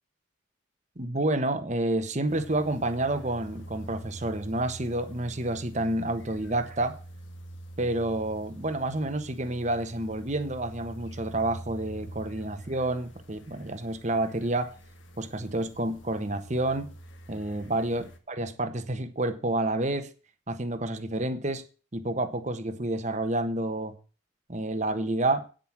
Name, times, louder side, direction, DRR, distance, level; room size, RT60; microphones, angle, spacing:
voice 1, 1.0-6.9 7.8-14.7 15.2-16.9 17.3-20.1 20.5-21.6 21.9-23.9 24.5-25.5, right 2 dB, 40° right, 1.3 m, -29 dB
sound 1, 2.3-18.2, right 1 dB, 80° left, 1.8 m, -45 dB
9.2 x 7.8 x 6.0 m
head